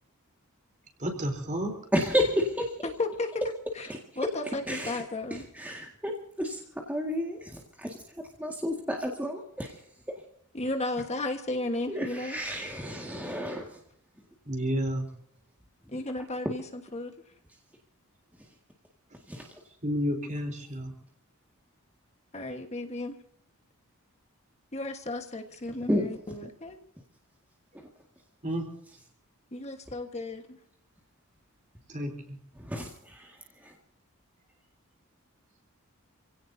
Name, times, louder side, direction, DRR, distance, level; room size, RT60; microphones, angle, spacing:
voice 1, 1.0-1.8 14.5-15.1 19.8-20.9 28.4-28.7 31.9-32.4, equal, 35° right, 4 dB, 3.9 m, -31 dB
voice 2, 1.9-2.8 3.9-4.0 4.7-5.0 5.3-8.0 8.4-9.8 11.9-13.8 16.4-16.5 19.3-19.5 25.9-26.1 27.7-27.9 32.6-33.7, equal, 5° right, 0 dB, 2.0 m, -31 dB
voice 3, 2.8-3.3 3.8-3.9 4.2-5.4 10.5-12.4 15.9-17.1 22.3-23.1 24.7-26.8 29.5-30.6, left 2 dB, 30° left, 5 dB, 1.5 m, -34 dB
28.0 x 17.0 x 2.8 m, 0.68 s
head